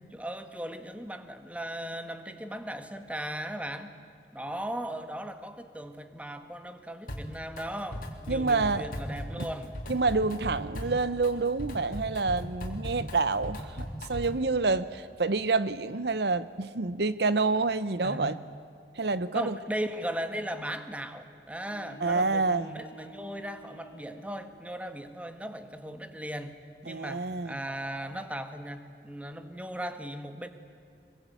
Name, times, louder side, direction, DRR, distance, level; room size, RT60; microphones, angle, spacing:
voice 1, 0.1-3.9 4.3-9.8 18.0-18.3 19.3-26.6 26.8-30.5, equal, 5° right, 9 dB, 1.6 m, -37 dB
Drum kit, 7.1-7.6 7.9-14.4, equal, 50° left, 3.9 m, -38 dB
voice 2, 8.3-8.9 9.4-9.5 9.9-18.4 18.9-19.6 22.0-22.8 26.9-27.6, right 3 dB, 65° right, 15 dB, 0.8 m, -28 dB
sound 1, 21.7-24.6, right 4 dB, 70° left, 4.0 m, -52 dB
25.5 x 22.5 x 9.4 m, 2.5 s
head